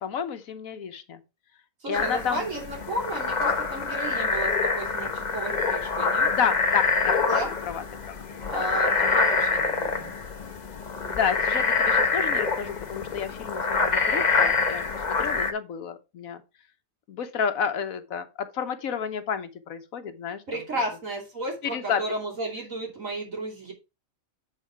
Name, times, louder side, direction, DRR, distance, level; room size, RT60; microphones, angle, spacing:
voice 1, 0.0-1.2 1.9-2.5 6.3-8.2 8.4-9.2 11.1-16.4 17.1-20.6 21.6-22.0, left 7 dB, 80° left, 1.4 m, -31 dB
voice 2, 1.8-6.3 7.3-7.5 8.4-10.1 20.5-23.7, right 1 dB, 70° right, 3.2 m, -33 dB
sound 1, 1.9-15.5, left 4 dB, 35° left, 1.0 m, -26 dB
8.3 x 4.8 x 4.7 m
omnidirectional pair, 1.4 m